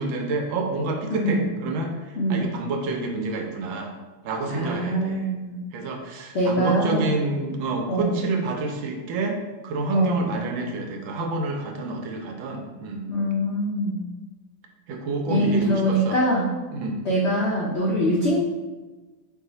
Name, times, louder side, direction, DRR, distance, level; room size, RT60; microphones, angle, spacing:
voice 1, 0.0-3.9 4.2-5.3 5.7-9.4 9.6-13.1 14.9-16.2 16.7-17.0, right 3 dB, 90° right, 2 dB, 1.4 m, -28 dB
voice 2, 1.1-1.4 2.2-2.5 4.5-5.6 6.3-7.2 7.9-8.2 9.9-10.3 13.1-14.0 15.3-16.5 17.0-18.4, right 1 dB, 90° left, -5 dB, 0.6 m, -23 dB
4.7 x 2.4 x 3.9 m, 1.2 s
omnidirectional pair, 2.1 m